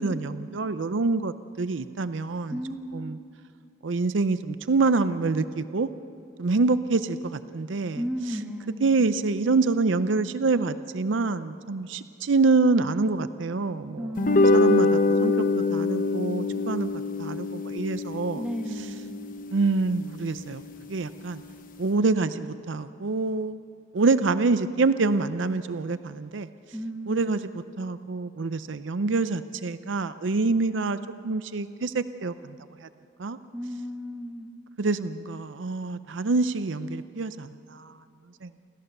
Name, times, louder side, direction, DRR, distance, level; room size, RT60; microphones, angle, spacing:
voice 1, 0.0-2.6 2.9-3.2 3.8-5.9 6.4-8.0 8.8-14.2 14.5-16.9 17.2-18.4 19.5-20.6 20.9-21.4 21.8-23.6 23.9-26.5 27.1-31.0 31.2-32.6 32.8-32.9 33.2-33.4 34.8-38.0 38.4-38.5, right 3 dB, 70° right, 12 dB, 0.6 m, -26 dB
voice 2, 2.5-3.2 8.0-8.9 14.0-14.9 18.4-19.1 26.7-27.4 33.5-34.5, equal, 5° right, 0 dB, 1.8 m, -34 dB
sound 1, 14.2-20.7, left 2 dB, 45° left, 0.8 m, -25 dB
28.5 x 13.5 x 6.7 m, 2.4 s
head